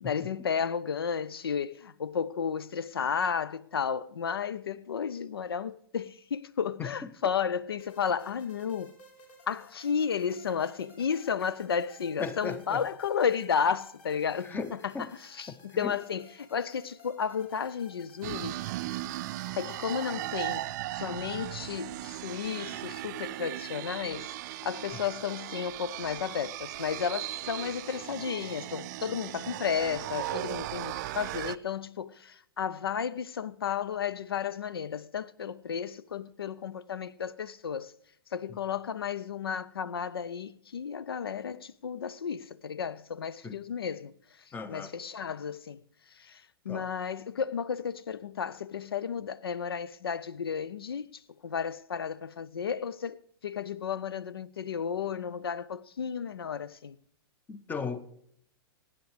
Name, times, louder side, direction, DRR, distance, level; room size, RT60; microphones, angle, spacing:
voice 1, 0.0-8.9 9.5-18.6 19.6-24.3 24.6-37.9 38.3-44.1 44.7-45.8 46.1-57.0, left 7 dB, 80° left, 0.4 m, -33 dB
voice 2, 6.8-7.1 12.2-12.8 14.4-15.1 15.5-15.9 43.4-43.6 44.5-44.9 46.7-46.9 57.5-58.0, left 5 dB, 15° left, 0.8 m, -37 dB
sound 1, 7.8-20.7, left 2 dB, 40° left, 4.4 m, -57 dB
sound 2, 18.2-31.6, right 16 dB, 50° right, 0.4 m, -37 dB
23.5 x 9.5 x 3.3 m
figure-of-eight pair, 105°, 12 cm